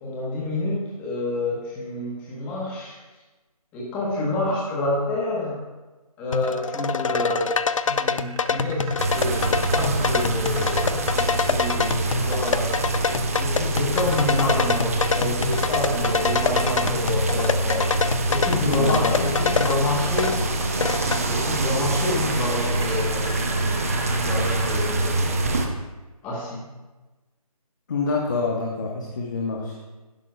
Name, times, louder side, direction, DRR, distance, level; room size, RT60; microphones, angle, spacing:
voice 1, 0.0-3.0 3.7-5.6 6.2-12.8 13.4-17.8 18.3-23.9 24.2-25.2 26.2-26.6, left 2 dB, 10° left, -4 dB, 1.1 m, -28 dB
sound 1, 6.3-21.2, left 5 dB, 55° left, 0.4 m, -26 dB
sound 2, 7.2-13.4 16.2-17.8 18.3-19.7 20.9-24.9, right 3 dB, 50° right, 1.7 m, -42 dB
sound 3, 9.0-25.7, right 2 dB, 25° right, 0.6 m, -25 dB
voice 2, 18.7-19.3 27.9-29.8, left 4 dB, 30° left, -1 dB, 0.9 m, -26 dB
11.5 x 10.5 x 2.3 m, 1.2 s
figure-of-eight pair, 165°, 19 cm